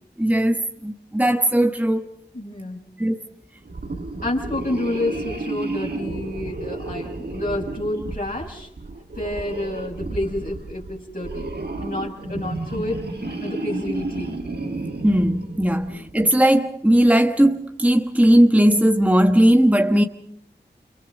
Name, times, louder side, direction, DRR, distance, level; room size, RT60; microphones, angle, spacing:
voice 1, 0.2-2.1 3.0-3.2 15.0-20.0, right 1 dB, 10° right, 1.2 m, -18 dB
voice 2, 2.3-2.8 4.2-8.7 9.2-11.5 11.8-13.0 13.4-14.4 15.9-16.0, left 1 dB, 50° left, 5.6 m, -29 dB
sound 1, 3.6-16.1, right 2 dB, 60° right, 2.2 m, -32 dB
29.5 x 26.5 x 5.2 m
wide cardioid pair, 50°, 19 cm